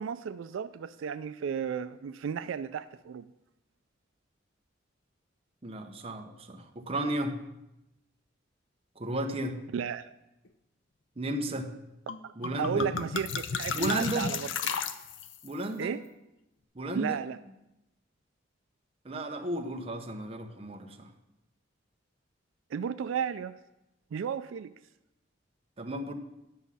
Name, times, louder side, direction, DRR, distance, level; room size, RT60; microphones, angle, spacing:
voice 1, 0.0-3.3 9.7-10.1 12.2-14.5 15.8-16.0 16.9-17.4 22.7-23.6 24.1-24.7, right 7 dB, 85° right, 12 dB, 0.3 m, -34 dB
voice 2, 5.6-7.4 9.0-9.6 11.2-11.7 12.4-12.9 13.7-14.3 15.4-15.9 16.7-17.2 19.0-21.1 25.8-26.1, right 1 dB, 30° right, 4 dB, 0.8 m, -33 dB
sound 1, 12.1-12.2 12.4-15.5, left 6 dB, 70° left, 0.6 m, -34 dB
10.5 x 6.2 x 5.5 m, 0.91 s
head